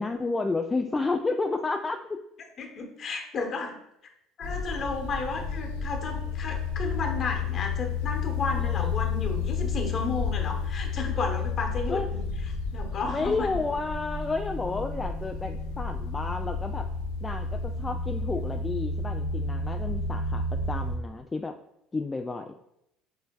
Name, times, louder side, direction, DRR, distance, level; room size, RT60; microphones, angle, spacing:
voice 1, 0.0-2.2 8.7-8.9 11.9-12.1 13.1-16.9 17.2-21.6 21.9-22.5, left 3 dB, 20° left, 4 dB, 0.3 m, -31 dB
voice 2, 2.6-3.8 4.4-12.2 12.7-13.6 17.7-18.0, left 3 dB, 45° left, 4 dB, 1.0 m, -33 dB
sound 1, 4.4-21.0, left 4 dB, 75° left, 0.6 m, -31 dB
6.7 x 3.2 x 2.3 m, 0.81 s
figure-of-eight pair, 60°, 0 cm